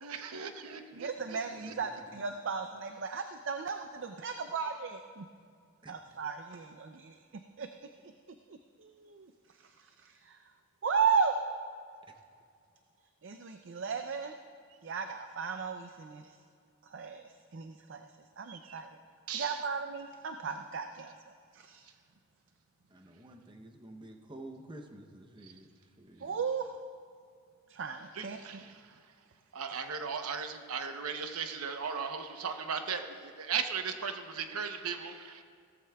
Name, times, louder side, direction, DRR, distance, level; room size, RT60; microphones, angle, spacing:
voice 1, 0.0-1.7 18.5-18.8 19.3-19.6 28.2-28.7 29.5-35.4, right 6 dB, 85° right, 7 dB, 0.8 m, -37 dB
voice 2, 0.9-5.3 5.9-7.7 8.5-10.5 10.8-11.3 13.2-14.3 14.8-16.4 16.8-19.0 19.3-21.8 26.2-26.7 27.7-28.6 29.7-29.8, right 5 dB, 55° right, 6 dB, 0.5 m, -36 dB
voice 3, 1.6-2.1 5.8-5.9 22.9-25.7 26.0-26.4, right 1 dB, 20° right, 3 dB, 0.7 m, -50 dB
17.0 x 14.0 x 2.3 m, 2.2 s
head